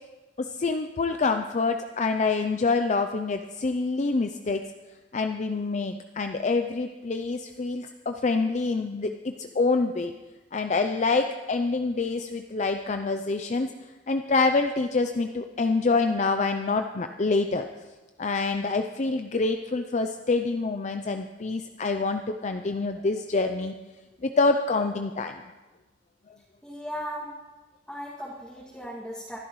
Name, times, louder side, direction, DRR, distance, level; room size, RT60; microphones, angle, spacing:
voice 1, 0.4-4.6 5.1-10.1 10.5-13.7 14.1-17.7 18.2-23.7 24.2-25.4, left 3 dB, 40° left, 6 dB, 0.5 m, -26 dB
voice 2, 26.6-27.3 27.9-29.4, equal, 5° left, -8 dB, 2.2 m, -37 dB
24.0 x 12.0 x 3.1 m, 1.2 s
head